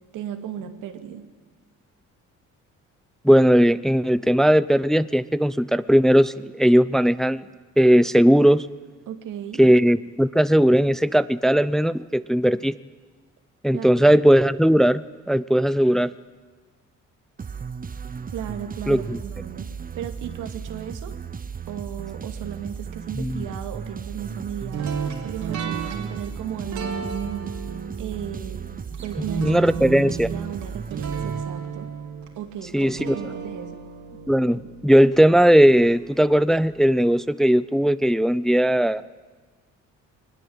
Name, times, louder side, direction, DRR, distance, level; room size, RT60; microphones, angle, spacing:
voice 1, 0.1-1.3 9.1-9.6 13.7-14.1 18.3-19.7 20.0-21.1 21.7-27.6 28.0-28.7 29.0-31.9 32.4-33.8, right 9 dB, 90° right, 6 dB, 2.5 m, -35 dB
voice 2, 3.2-7.4 7.8-8.7 9.6-12.7 13.6-16.1 18.9-19.2 23.2-23.4 29.4-30.3 32.7-33.2 34.3-39.0, equal, ahead, 16 dB, 0.6 m, -18 dB
sound 1, 17.4-32.0, right 6 dB, 30° right, 0.9 m, -36 dB
sound 2, 24.7-35.8, right 7 dB, 70° right, 3.5 m, -33 dB
21.5 x 20.0 x 8.8 m, 1.4 s
cardioid pair, 90°, 30 cm